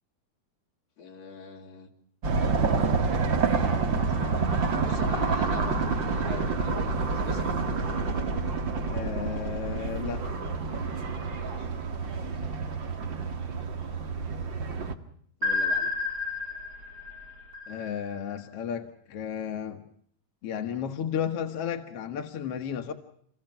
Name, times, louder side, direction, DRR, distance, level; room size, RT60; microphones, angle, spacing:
voice 1, 1.0-1.9 3.5-4.2 4.7-7.6 11.3-11.7 12.1-12.3 15.4-16.0, left 5 dB, 40° left, 2 dB, 4.3 m, -43 dB
sound 1, 2.2-14.9, right 4 dB, 45° right, 1.6 m, -28 dB
voice 2, 8.9-10.4 17.7-19.8 20.4-22.9, left 8 dB, 60° left, 5 dB, 1.6 m, -33 dB
sound 2, 15.4-18.3, left 3 dB, 30° right, 2.2 m, -31 dB
28.5 x 22.5 x 5.9 m, 0.65 s
omnidirectional pair, 4.8 m